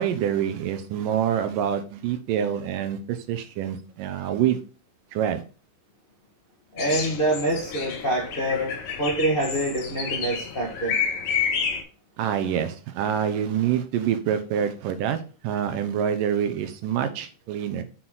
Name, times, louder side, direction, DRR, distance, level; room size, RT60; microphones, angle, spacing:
voice 1, 0.0-4.6 5.1-5.4 12.2-17.8, right 9 dB, 80° right, 2.4 m, -26 dB
voice 2, 6.7-11.0, right 1 dB, 80° left, 0.5 m, -26 dB
sound 1, 6.8-11.8, left 6 dB, 60° left, 2.1 m, -30 dB
6.4 x 6.0 x 3.9 m
omnidirectional pair, 3.9 m